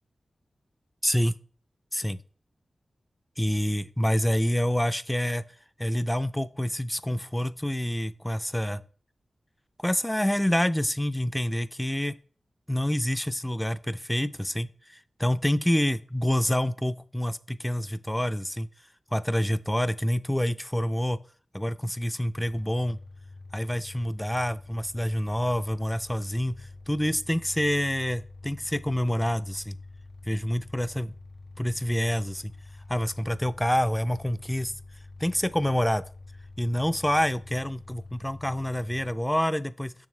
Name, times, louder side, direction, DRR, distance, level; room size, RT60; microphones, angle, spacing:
voice 1, 1.0-1.4 1.9-2.2 3.4-5.4 5.8-8.8 9.8-12.2 12.7-18.7 19.1-21.2 21.5-23.0 23.5-29.8 30.2-31.1 31.6-32.5 32.9-34.7 35.2-36.0 36.6-39.9, equal, 5° left, 0.4 m, -27 dB
sound 1, 22.3-39.1, left 2 dB, 80° left, 3.5 m, -46 dB
7.2 x 6.3 x 3.2 m
cardioid pair, 55°, 0 cm